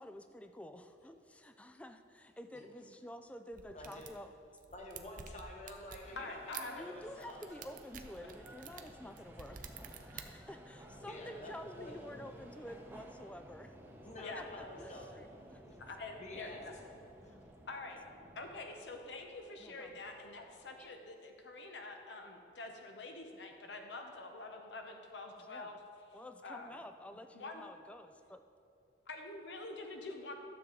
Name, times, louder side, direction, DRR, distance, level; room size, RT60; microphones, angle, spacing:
voice 1, 0.0-4.3 6.8-13.8 14.3-15.6 17.2-17.6 19.6-20.0 20.8-20.9 25.4-25.8 26.1-28.4, left 1 dB, 5° left, 8 dB, 0.3 m, -50 dB
sound 1, 3.5-4.2 4.6-6.1 6.5-6.6 7.2-10.2, right 7 dB, 45° right, 0.6 m, -49 dB
voice 2, 3.7-4.1 4.7-7.5 11.0-11.9 12.2-12.3 14.0-15.1 15.7-15.8 16.2-16.6 17.2-17.3, left 1 dB, 40° left, 0 dB, 1.1 m, -49 dB
sound 2, 6.0-20.9, equal, 10° right, 0.8 m, -56 dB
voice 3, 6.2-6.8 11.8-11.9 14.2-14.5 15.7-16.7 17.7-18.0 18.4-25.8 26.4-26.7 27.3-27.6 29.1-30.3, left 3 dB, 80° left, 3 dB, 0.8 m, -46 dB
sound 3, 13.5-18.5, equal, 70° right, 1.5 m, -62 dB
12.0 x 7.2 x 3.9 m, 2.6 s
head